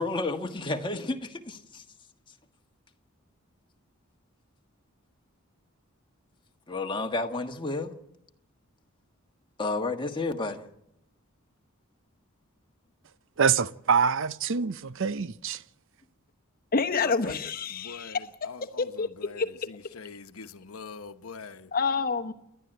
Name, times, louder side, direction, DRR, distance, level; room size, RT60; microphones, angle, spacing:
voice 1, 0.0-1.8 6.7-7.9 9.6-10.6 17.0-17.4, left 2 dB, 25° left, 1.4 m, -31 dB
voice 2, 13.4-15.6, right 6 dB, 65° right, 0.7 m, -25 dB
voice 3, 16.7-18.3 18.8-19.7 21.7-22.3, left 4 dB, 45° left, 1.0 m, -28 dB
voice 4, 17.7-21.7, left 4 dB, 85° left, 1.0 m, -44 dB
29.5 x 11.5 x 7.8 m
head